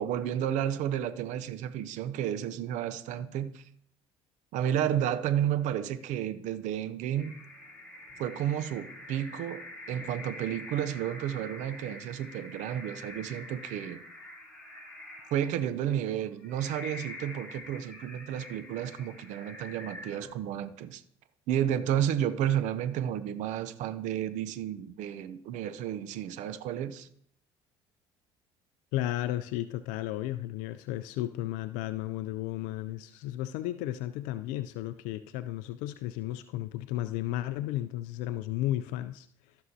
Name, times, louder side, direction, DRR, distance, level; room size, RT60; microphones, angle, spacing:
voice 1, 0.0-3.6 4.5-7.4 8.2-9.6 9.9-14.0 15.3-21.0 21.5-27.1, right 10 dB, 70° right, 12 dB, 0.6 m, -31 dB
sound 1, 7.1-20.7, left 2 dB, 5° left, 3.4 m, -46 dB
voice 2, 28.9-39.3, left 14 dB, 75° left, 12 dB, 0.4 m, -34 dB
14.5 x 6.2 x 2.8 m, 0.66 s
hypercardioid pair, 70°, 13 cm